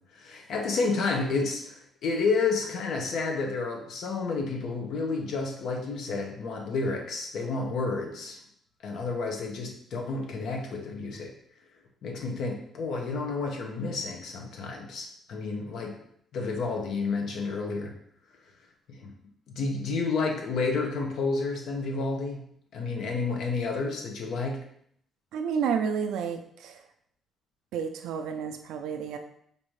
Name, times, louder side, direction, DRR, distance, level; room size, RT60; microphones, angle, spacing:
voice 1, 0.1-8.4 8.8-11.3 12.0-16.0 16.3-17.9 18.9-19.1 19.5-22.4 22.7-24.6, left 4 dB, 75° left, 2 dB, 0.9 m, -30 dB
voice 2, 25.3-26.8 27.7-29.2, right 7 dB, 90° right, 6 dB, 0.4 m, -30 dB
5.0 x 2.7 x 3.2 m, 0.67 s
cardioid pair, 90°, 0 cm